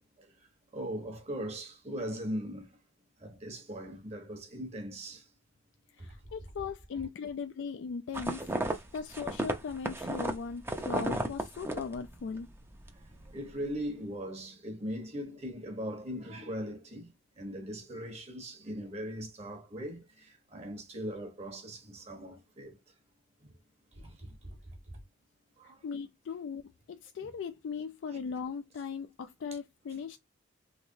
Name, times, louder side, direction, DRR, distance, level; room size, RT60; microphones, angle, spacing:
voice 1, 0.7-2.7 3.2-5.2 6.0-6.3 7.0-7.1 13.3-22.8 23.4-23.5 23.9-24.6 24.9-25.0 25.6-25.8 27.2-27.3, equal, 35° right, 1.0 m, -40 dB
voice 2, 6.0-8.5 8.9-12.5 25.8-26.6 26.9-30.2, left 5 dB, 70° left, 0.3 m, -38 dB
sound 1, 8.1-12.5 12.8-13.3, right 1 dB, 10° right, 0.5 m, -34 dB
3.3 x 3.2 x 2.6 m
head